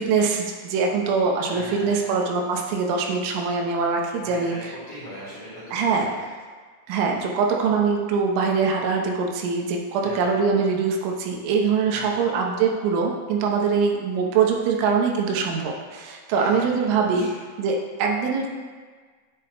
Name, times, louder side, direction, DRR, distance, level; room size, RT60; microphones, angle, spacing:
voice 1, 0.0-4.5 5.7-6.1 6.9-17.3 17.6-18.5, right 5 dB, 85° right, 1 dB, 3.4 m, -23 dB
voice 2, 1.5-2.1 4.2-6.2 9.9-10.4 11.8-12.2 16.2-17.3, equal, 40° left, -10 dB, 2.7 m, -40 dB
10.5 x 8.2 x 2.2 m, 1.5 s
omnidirectional pair, 5.5 m